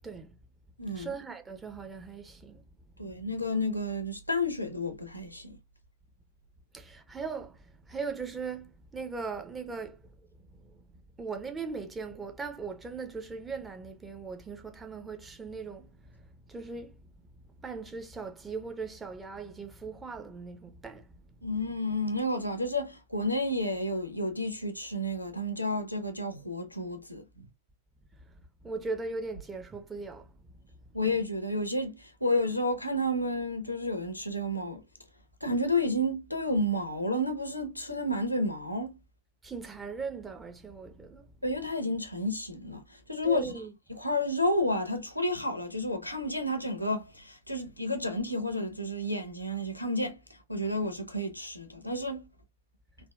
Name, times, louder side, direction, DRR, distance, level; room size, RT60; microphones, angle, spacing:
voice 1, 0.0-0.3 0.9-2.6 6.7-7.6 7.9-10.0 11.2-15.9 16.5-17.0 17.6-21.0 28.6-30.3 39.4-41.3 43.2-43.7, right 4 dB, 15° right, 0.6 m, -39 dB
voice 2, 0.8-1.1 3.0-5.6 21.4-27.5 30.9-34.8 35.4-39.0 41.4-43.5 43.9-50.2 50.5-52.3, left 1 dB, 90° left, 0.7 m, -31 dB
3.5 x 2.2 x 2.3 m
figure-of-eight pair, 90°, 0 cm